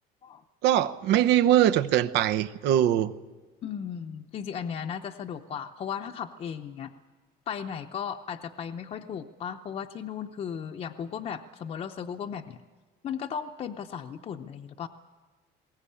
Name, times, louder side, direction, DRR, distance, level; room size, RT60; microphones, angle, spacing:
voice 1, 0.6-3.1, right 11 dB, 80° right, 0.8 m, -22 dB
voice 2, 3.6-6.9 7.5-12.6 13.0-14.9, left 7 dB, 40° left, 0.7 m, -36 dB
21.0 x 18.0 x 8.6 m
cardioid pair, 155°, 17 cm